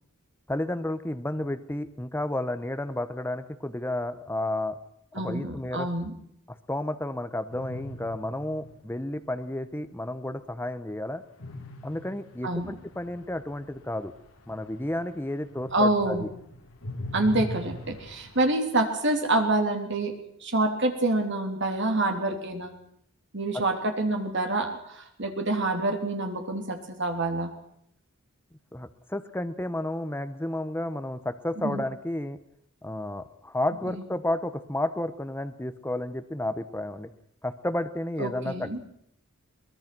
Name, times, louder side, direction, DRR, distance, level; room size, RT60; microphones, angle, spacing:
voice 1, 0.5-4.8 5.1-5.9 6.5-11.2 11.8-14.1 14.5-16.3 28.7-32.4 32.8-37.1 37.4-38.8, left 1 dB, 10° left, 10 dB, 1.0 m, -32 dB
voice 2, 5.1-6.1 12.4-12.7 15.7-16.3 17.1-20.1 20.4-22.7 23.3-27.5 31.6-31.8 33.9-34.0 38.2-38.8, right 2 dB, 60° right, 4 dB, 3.5 m, -27 dB
sound 1, 7.5-9.2 11.4-15.2 15.5-18.5, equal, 75° left, 2.6 m, -41 dB
22.5 x 20.5 x 6.1 m, 0.72 s
head